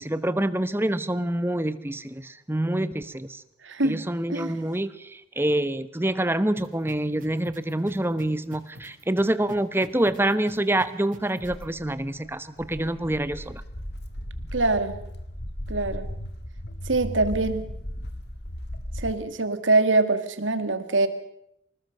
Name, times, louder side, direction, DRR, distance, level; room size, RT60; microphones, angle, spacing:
voice 1, 0.0-3.4 3.8-13.6, right 1 dB, 10° right, 13 dB, 0.9 m, -26 dB
voice 2, 3.6-4.0 4.3-4.6 14.5-14.9 15.7-16.1 16.9-17.7 19.0-21.1, right 2 dB, 90° right, 10 dB, 2.0 m, -24 dB
sound 1, 6.6-11.6, equal, 45° right, 5.5 m, -45 dB
Walk footsteps, 11.4-19.1, equal, 60° left, 2.0 m, -36 dB
25.0 x 19.5 x 6.6 m, 0.78 s
head